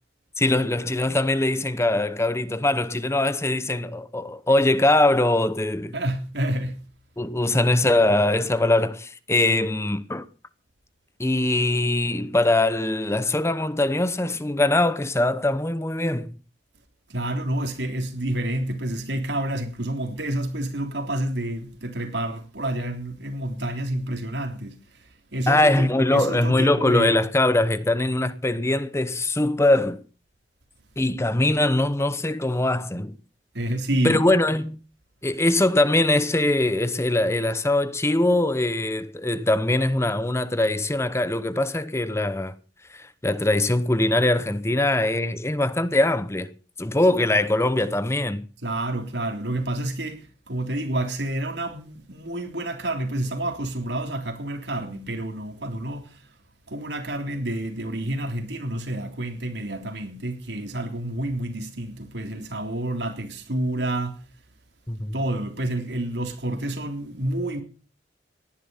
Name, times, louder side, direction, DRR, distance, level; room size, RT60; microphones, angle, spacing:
voice 1, 0.4-5.9 7.2-10.3 11.2-16.3 25.5-30.0 31.0-33.1 34.0-34.8 35.2-42.5 42.9-46.5 46.8-48.5 64.9-65.1, left 2 dB, 15° left, 0.8 m, -22 dB
voice 2, 5.9-6.8 17.1-27.2 33.5-34.2 48.6-56.2 56.7-64.2 65.1-67.6, right 1 dB, 75° right, 3.5 m, -29 dB
18.5 x 11.0 x 5.6 m
head